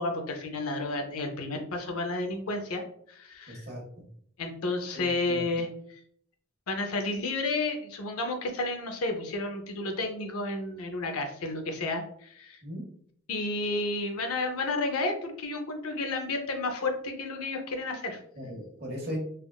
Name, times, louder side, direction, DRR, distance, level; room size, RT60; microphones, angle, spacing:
voice 1, 0.0-2.8 3.1-3.7 4.4-6.0 6.7-12.6 13.3-18.2, left 2 dB, 80° left, 5 dB, 0.6 m, -31 dB
voice 2, 3.5-3.8 4.9-5.4 12.6-12.8 18.4-19.2, equal, 50° right, -1 dB, 1.0 m, -37 dB
3.4 x 2.4 x 2.3 m, 0.64 s
head